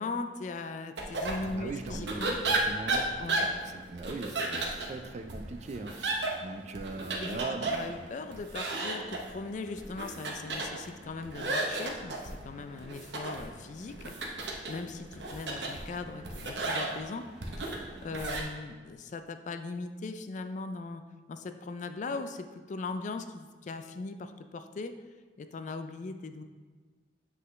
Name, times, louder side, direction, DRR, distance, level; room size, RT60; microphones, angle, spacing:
voice 1, 0.0-2.4 3.2-3.5 7.2-7.4 7.8-14.1 14.7-17.2 17.6-21.0 21.3-24.9 25.4-26.5, left 3 dB, 45° left, 8 dB, 0.3 m, -39 dB
sound 1, 1.0-18.4, right 2 dB, 80° right, 0.8 m, -35 dB
voice 2, 1.4-8.1, right 3 dB, 40° right, 8 dB, 0.4 m, -40 dB
7.9 x 3.8 x 3.1 m, 1.4 s
head